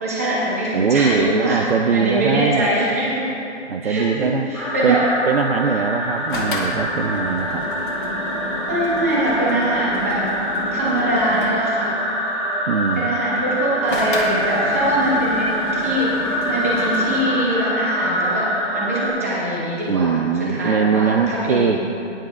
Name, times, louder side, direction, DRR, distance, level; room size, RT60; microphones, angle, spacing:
voice 1, 0.0-3.3 3.8-5.1 8.6-10.3 10.7-12.1 12.9-18.5 18.7-21.9, right 1 dB, 10° right, -6 dB, 1.0 m, -23 dB
voice 2, 0.7-2.7 3.7-4.5 4.8-7.7 12.7-13.1 19.9-21.8, right 6 dB, 55° right, 6 dB, 0.5 m, -21 dB
sound 1, 4.5-19.1, equal, 5° left, 2.1 m, -25 dB
sound 2, 6.3-11.7 13.9-17.3, left 1 dB, 45° left, 1.4 m, -31 dB
18.5 x 10.0 x 2.4 m, 2.7 s
hypercardioid pair, 180°, 36 cm